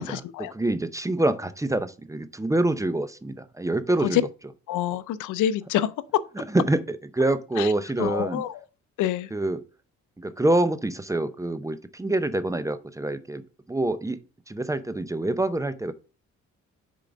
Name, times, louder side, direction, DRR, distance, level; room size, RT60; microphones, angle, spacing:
voice 1, 0.0-0.5 4.0-4.2 4.7-5.9 7.6-7.7 8.0-8.6 9.0-9.3, left 12 dB, 80° left, 0.5 m, -26 dB
voice 2, 0.5-4.2 6.4-8.4 9.3-9.6 10.2-13.4 13.7-14.2 14.5-15.9, right 2 dB, 10° right, 0.6 m, -26 dB
6.7 x 3.8 x 5.0 m
cardioid pair, 90°, 30 cm